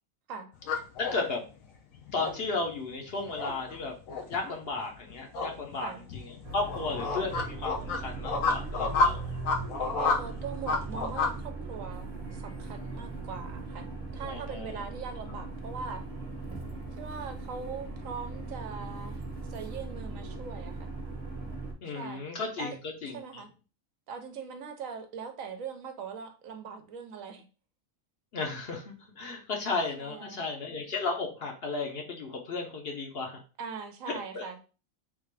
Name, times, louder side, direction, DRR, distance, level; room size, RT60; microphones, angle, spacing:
sound 1, 0.5-11.3, left 3 dB, 80° left, 1.1 m, -31 dB
voice 1, 1.0-1.4 2.1-3.9 4.3-9.2 14.2-14.8 21.8-22.7 23.0-23.4 28.3-33.4 34.1-34.4, left 3 dB, 55° left, 1 dB, 0.8 m, -34 dB
sound 2, 6.4-21.7, right 3 dB, 35° right, 0.8 m, -39 dB
voice 2, 10.0-13.9 14.1-16.0 17.0-19.2 19.5-20.9 21.8-22.2 22.6-22.8 23.1-23.5 24.1-27.5 30.0-30.4 33.6-34.6, right 6 dB, 80° right, 7 dB, 1.0 m, -41 dB
3.6 x 2.4 x 3.1 m, 0.35 s
omnidirectional pair, 1.4 m